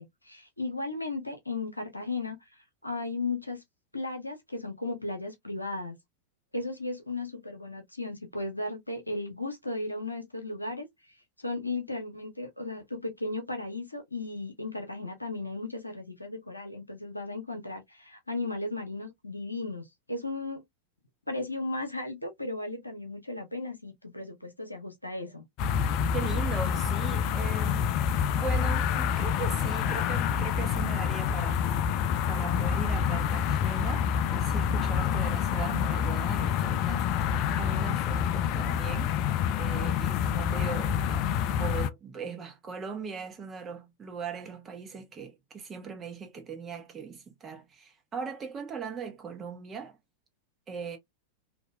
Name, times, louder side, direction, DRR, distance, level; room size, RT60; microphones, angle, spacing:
voice 1, 0.0-2.4 2.8-3.6 3.9-5.9 6.5-10.9 11.4-20.6 21.3-25.4, left 2 dB, 85° left, 0.9 m, -35 dB
sound 1, 25.6-41.9, left 8 dB, 40° left, 0.3 m, -27 dB
voice 2, 26.1-27.9 28.3-31.7 32.3-39.1 39.6-50.0 50.7-51.0, right 6 dB, 25° right, 1.1 m, -39 dB
2.8 x 2.8 x 2.2 m
figure-of-eight pair, 90°, 0 cm